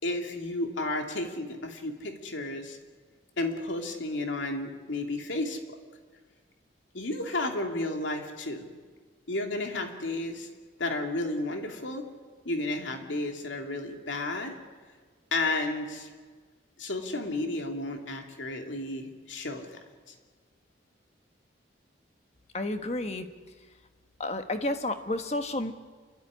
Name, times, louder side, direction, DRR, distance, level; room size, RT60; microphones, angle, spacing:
voice 1, 0.0-2.8 3.4-5.8 6.9-8.7 9.3-10.5 10.8-12.0 12.4-14.5 15.3-16.1 16.8-19.8, left 2 dB, 80° left, 3 dB, 2.6 m, -32 dB
voice 2, 22.5-23.3 24.2-25.7, left 2 dB, 35° left, 8 dB, 1.3 m, -31 dB
28.0 x 13.0 x 9.9 m, 1.5 s
head